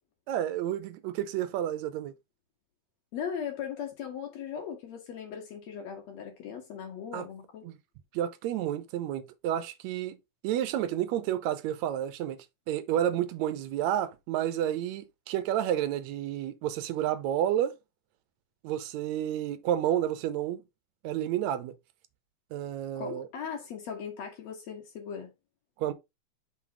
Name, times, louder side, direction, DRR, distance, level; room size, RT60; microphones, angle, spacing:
voice 1, 0.3-2.1 7.1-7.3 7.6-7.8 8.1-10.2 10.4-17.8 18.6-20.6 21.0-21.7 22.5-23.3 25.8-25.9, right 11 dB, 75° right, 2.0 m, -30 dB
voice 2, 3.1-7.7 23.0-25.3, left 7 dB, 70° left, 2.4 m, -38 dB
6.2 x 3.9 x 4.5 m
omnidirectional pair, 3.3 m